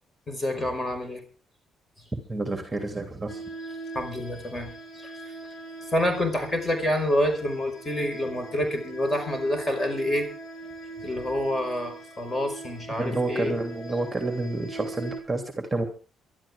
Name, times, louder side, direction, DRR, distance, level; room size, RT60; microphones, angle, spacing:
voice 1, 0.3-1.2 3.9-5.1 5.9-10.3 11.0-13.6, left 1 dB, 25° left, 6 dB, 5.3 m, -27 dB
voice 2, 2.1-3.4 13.0-15.9, right 2 dB, 15° right, 5 dB, 2.9 m, -29 dB
sound 1, 3.3-15.2, right 2 dB, 65° left, 5.4 m, -41 dB
23.5 x 12.5 x 3.7 m, 0.36 s
cardioid pair, 90°, 0 cm